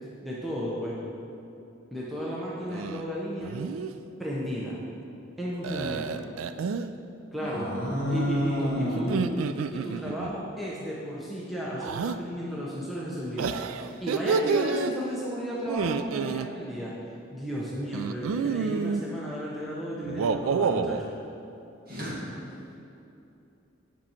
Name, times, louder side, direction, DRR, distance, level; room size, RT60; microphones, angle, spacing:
voice 1, 0.2-1.0 1.9-3.5 4.2-4.8 5.4-6.2 7.3-7.7 8.1-9.2 9.7-13.5 13.9-16.9 17.3-21.1, equal, ahead, -7 dB, 0.8 m, -34 dB
sound 1, 2.7-3.0 3.4-3.9 5.6-6.9 9.0-10.3 11.8-12.2 13.4-14.9 15.6-16.5 17.9-19.0 20.0-21.0, right 5 dB, 90° right, 0.3 m, -29 dB
voice 2, 7.4-9.0 21.9-22.1, left 1 dB, 45° right, -6 dB, 1.9 m, -29 dB
8.2 x 6.2 x 4.4 m, 2.8 s
head